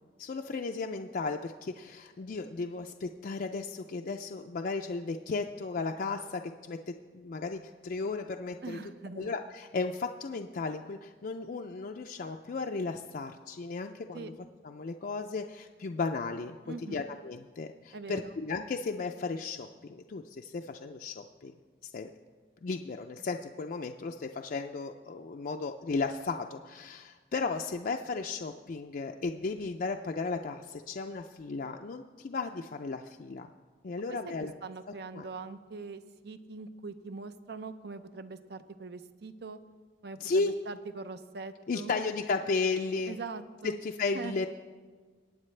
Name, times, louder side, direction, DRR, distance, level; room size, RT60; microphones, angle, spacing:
voice 1, 0.2-8.8 9.2-14.3 14.6-21.5 21.9-22.1 22.6-33.5 33.8-34.5 35.1-35.3 40.2-40.5 41.7-43.2 43.6-44.5, left 4 dB, 50° left, 3 dB, 0.4 m, -35 dB
voice 2, 8.6-9.3 14.1-14.3 16.7-17.1 17.9-18.3 34.1-39.6 40.0-42.0 43.1-43.8 44.1-44.3, right 4 dB, 65° right, 11 dB, 0.6 m, -42 dB
22.0 x 9.0 x 3.3 m, 1.5 s
head